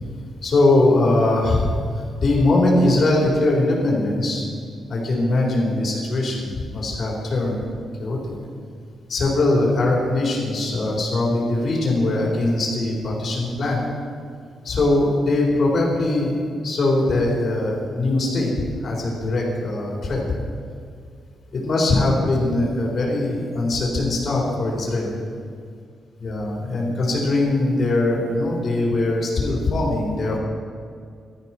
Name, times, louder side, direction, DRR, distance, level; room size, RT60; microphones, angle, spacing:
voice 1, 0.4-4.4 4.9-7.6 8.0-8.3 9.1-13.8 14.6-18.5 18.8-20.2 21.5-25.1 26.2-30.4, left 2 dB, 40° left, -3 dB, 4.6 m, -21 dB
16.0 x 13.0 x 6.2 m, 2.2 s
cardioid pair, 145°, 0 cm